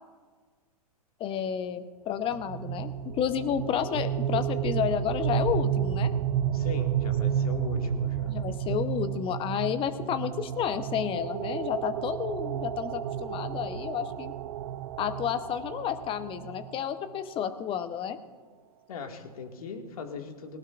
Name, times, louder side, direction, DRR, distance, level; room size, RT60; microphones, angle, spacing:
voice 1, 1.2-6.1 8.3-14.3 15.0-18.2, left 9 dB, 25° left, 12 dB, 0.9 m, -31 dB
sound 1, 2.3-17.2, right 9 dB, 55° right, 0.8 m, -31 dB
voice 2, 6.5-8.3 18.9-20.6, left 4 dB, 65° left, 4 dB, 2.1 m, -39 dB
19.5 x 18.5 x 2.5 m, 1.5 s
hypercardioid pair, 110°, 20 cm